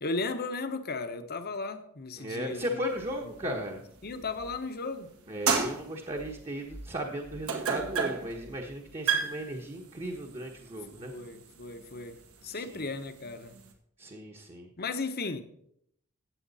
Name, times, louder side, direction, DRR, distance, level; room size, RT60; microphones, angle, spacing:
voice 1, 0.0-3.1 3.4-3.6 4.0-5.1 10.9-13.6 14.8-15.4, left 3 dB, 45° left, 1.2 m, -36 dB
voice 2, 2.2-3.8 5.3-11.1 12.5-12.8 14.0-14.7, right 1 dB, 25° right, 1.3 m, -36 dB
sound 1, 2.9-4.8 5.2-13.7, right 5 dB, 75° right, 2.1 m, -34 dB
15.5 x 8.5 x 4.2 m
head